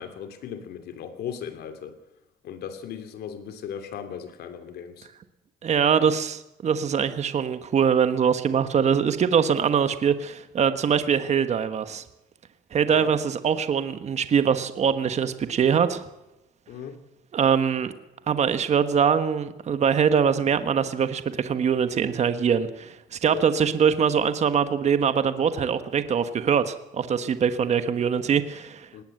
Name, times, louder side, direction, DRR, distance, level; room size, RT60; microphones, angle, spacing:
voice 1, 0.0-1.9 2.4-5.1 12.8-13.1 16.7-17.0 23.3-23.5 28.9-29.0, left 8 dB, 70° left, 8 dB, 2.9 m, -37 dB
voice 2, 5.6-12.0 12.7-16.0 17.3-17.9 18.3-28.9, right 7 dB, 40° right, 10 dB, 1.3 m, -23 dB
19.0 x 18.0 x 7.8 m, 0.93 s
cardioid pair, 110°, 17 cm